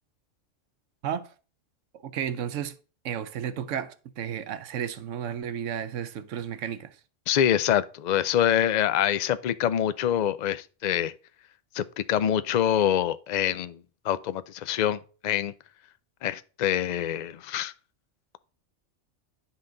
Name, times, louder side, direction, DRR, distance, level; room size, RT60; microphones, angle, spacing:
voice 1, 2.0-2.7 3.0-6.9, right 9 dB, 80° right, 1.1 m, -33 dB
voice 2, 7.3-11.1 11.7-13.8 14.0-15.5 16.2-17.7, left 10 dB, 60° left, 0.4 m, -25 dB
10.0 x 5.6 x 3.9 m
omnidirectional pair, 1.3 m